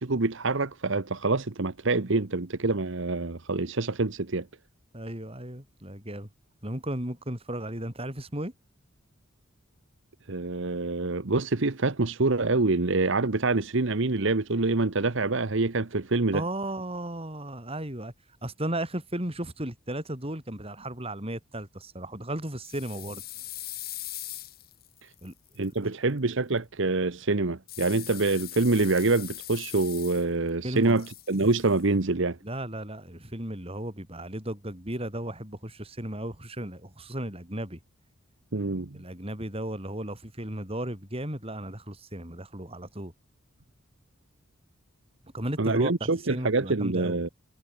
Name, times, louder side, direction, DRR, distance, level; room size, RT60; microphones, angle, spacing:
voice 1, 0.0-4.5 10.3-16.4 25.0-25.1 25.6-32.4 38.5-39.0 45.6-47.3, right 3 dB, 60° right, 1.1 m, -26 dB
voice 2, 4.9-6.3 6.6-8.5 16.3-18.1 18.4-23.2 25.2-25.3 25.8-25.9 30.6-31.0 32.4-37.8 38.9-43.1 45.3-47.2, right 1 dB, 30° right, 5.8 m, -35 dB
sound 1, 22.6-25.7 27.7-30.5 30.8-31.8, left 14 dB, 45° left, 4.9 m, -41 dB
head